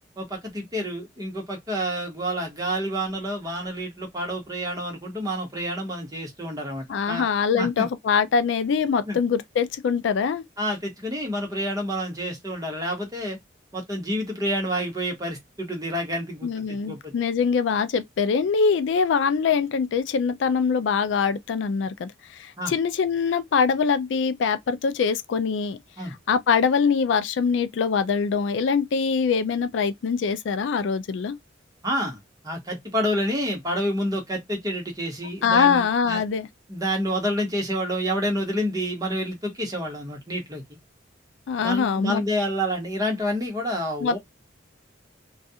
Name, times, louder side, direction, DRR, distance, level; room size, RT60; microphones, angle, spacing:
voice 1, 0.2-7.3 7.5-7.9 9.1-9.2 10.6-13.4 13.7-17.1 22.6-22.7 26.0-26.1 31.8-32.2 32.4-36.2 36.7-40.6 41.6-44.2, equal, 20° right, 1.0 m, -28 dB
voice 2, 6.9-10.4 16.4-31.4 35.4-36.5 41.5-42.2 44.0-44.2, left 6 dB, 75° left, 0.3 m, -23 dB
2.3 x 2.3 x 2.7 m
head